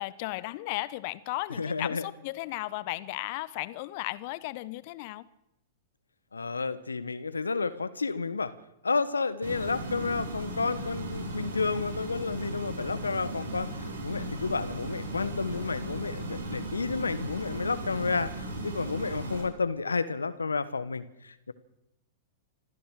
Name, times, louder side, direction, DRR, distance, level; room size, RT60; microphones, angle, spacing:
voice 1, 0.0-5.3, left 19 dB, 50° left, 18 dB, 1.1 m, -35 dB
voice 2, 1.6-2.0 6.3-8.5 8.8-21.5, left 4 dB, 80° left, 15 dB, 1.4 m, -31 dB
sound 1, 9.4-19.4, right 1 dB, 75° right, 7.3 m, -37 dB
26.5 x 15.0 x 6.6 m, 0.87 s
figure-of-eight pair, 100°, 0 cm